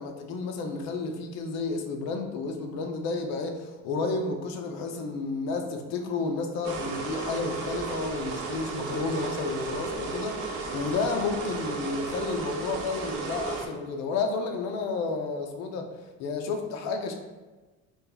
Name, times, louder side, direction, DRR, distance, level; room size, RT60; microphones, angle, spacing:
voice 1, 0.0-15.8 16.2-17.1, left 4 dB, 50° left, 4 dB, 0.5 m, -31 dB
sound 1, 6.6-13.6, right 4 dB, 50° right, 0.7 m, -34 dB
4.1 x 2.2 x 3.8 m, 1.2 s
cardioid pair, 165°, 34 cm